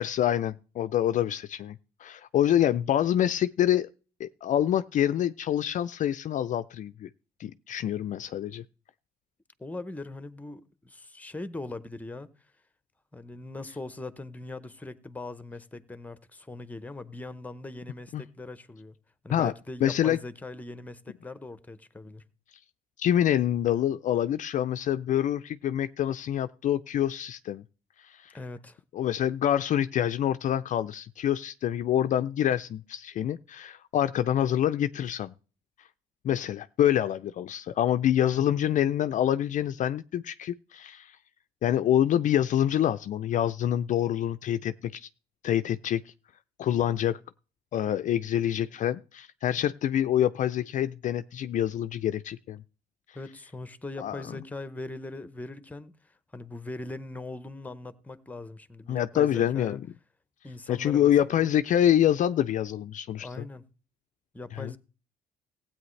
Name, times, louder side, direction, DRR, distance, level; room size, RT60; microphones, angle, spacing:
voice 1, 0.0-3.9 4.2-7.1 7.4-8.6 18.1-18.2 19.3-19.5 19.8-20.2 23.0-27.6 28.0-28.3 28.9-35.3 36.2-41.2 41.6-45.1 45.4-46.0 46.6-47.2 47.7-52.6 54.0-54.2 58.9-59.8 60.7-63.5 64.5-64.8, left 11 dB, 50° left, 0.4 m, -26 dB
voice 2, 9.6-12.3 13.1-19.0 19.2-22.2 28.3-28.8 38.2-38.6 53.1-59.8 60.4-61.5 63.2-63.7 64.3-64.8, left 2 dB, 10° left, 0.8 m, -40 dB
16.0 x 8.8 x 3.2 m
cardioid pair, 110°, 17 cm